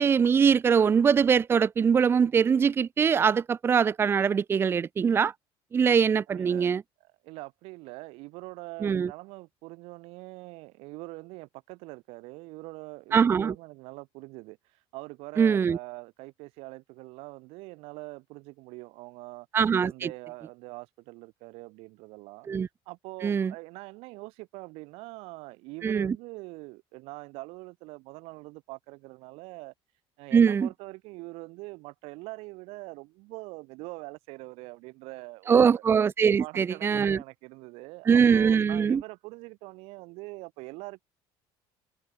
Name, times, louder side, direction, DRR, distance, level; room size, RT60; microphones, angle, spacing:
voice 1, 0.0-5.3 5.7-6.8 8.8-9.1 13.1-13.5 15.4-15.8 19.5-20.1 22.5-22.7 23.2-23.5 25.8-26.1 30.3-30.7 35.5-37.2 38.1-39.0, right 6 dB, 25° right, 1.4 m, -22 dB
voice 2, 6.3-6.7 7.0-19.5 19.8-22.5 22.9-29.7 30.2-35.8 36.3-41.0, right 24 dB, 90° right, 7.5 m, -43 dB
cardioid pair, 170°, 10 cm